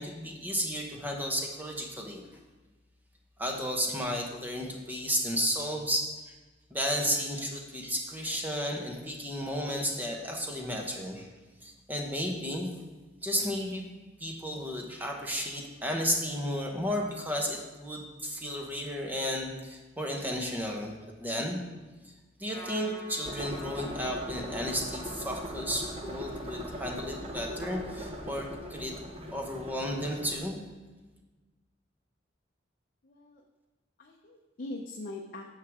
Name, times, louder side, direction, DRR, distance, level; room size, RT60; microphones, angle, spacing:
voice 1, 0.0-2.2 3.4-6.3 6.7-11.3 11.6-12.7 13.2-13.9 14.2-21.6 22.0-22.1 22.4-29.0 29.3-30.6, equal, 10° right, 1 dB, 1.1 m, -33 dB
Trumpet, 22.5-29.2, equal, 60° right, 2.9 m, -50 dB
sound 1, 23.2-30.4, equal, 30° right, 0.7 m, -40 dB
voice 2, 33.0-33.4 34.0-35.5, left 2 dB, 50° left, 1 dB, 0.6 m, -41 dB
9.3 x 6.5 x 3.6 m, 1.2 s
head